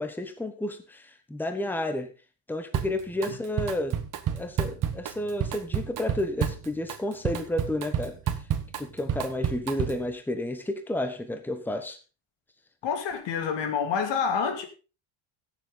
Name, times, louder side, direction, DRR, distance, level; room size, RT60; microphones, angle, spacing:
voice 1, 0.0-2.1 2.5-4.0 4.3-8.1 8.8-12.0, left 1 dB, 5° left, 1.2 m, -31 dB
Drum kit, 2.7-3.3 3.6-10.1, right 9 dB, 40° right, 1.4 m, -30 dB
voice 2, 12.8-14.7, left 6 dB, 60° left, 2.6 m, -27 dB
16.0 x 7.5 x 4.0 m
cardioid pair, 145°, 49 cm